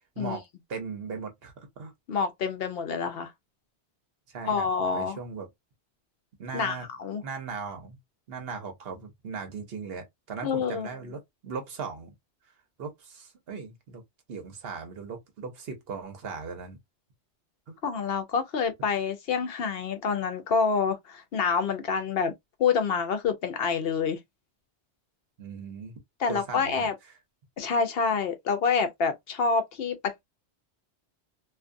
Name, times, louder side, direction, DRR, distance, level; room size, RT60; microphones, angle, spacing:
voice 1, 0.7-1.9 4.3-5.5 6.4-6.9 7.2-8.0 8.3-12.1 12.8-14.0 14.3-16.8 17.7-17.8 25.4-25.9 26.3-27.2, right 5 dB, 65° right, 1.0 m, -38 dB
voice 2, 2.1-3.3 4.4-5.2 6.5-7.2 10.4-10.9 17.8-22.3 22.6-24.2 26.2-26.9 27.6-30.0, left 5 dB, 65° left, 0.8 m, -27 dB
2.5 x 2.3 x 2.5 m
omnidirectional pair, 1.1 m